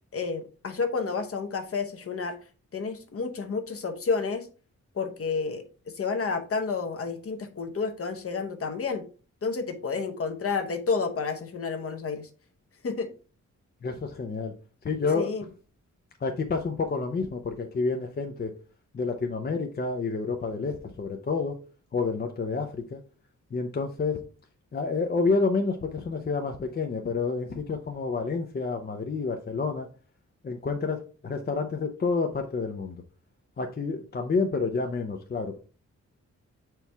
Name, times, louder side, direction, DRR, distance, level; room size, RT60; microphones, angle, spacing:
voice 1, 0.1-2.4 2.7-4.5 4.9-5.6 5.9-9.0 9.4-12.3 12.8-13.1 15.1-15.4, left 4 dB, 50° left, 7 dB, 0.9 m, -30 dB
voice 2, 13.8-14.5 14.8-15.3 16.2-18.5 18.9-21.6 21.9-23.0 23.5-24.2 24.7-29.9 30.4-33.0 33.6-35.6, left 4 dB, 35° left, 4 dB, 0.5 m, -29 dB
6.9 x 4.6 x 3.3 m, 0.37 s
wide cardioid pair, 175°, 29 cm